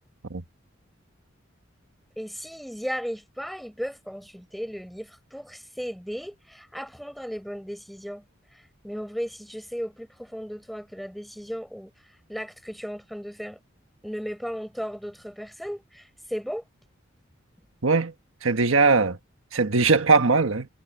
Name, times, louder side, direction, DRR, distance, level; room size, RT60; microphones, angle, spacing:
voice 1, 2.1-8.2 8.5-11.9 12.3-13.6 14.0-16.6, equal, ahead, 5.3 m, -35 dB
voice 2, 17.8-18.1 18.4-19.2 19.5-20.7, right 4 dB, 80° right, 1.3 m, -20 dB
head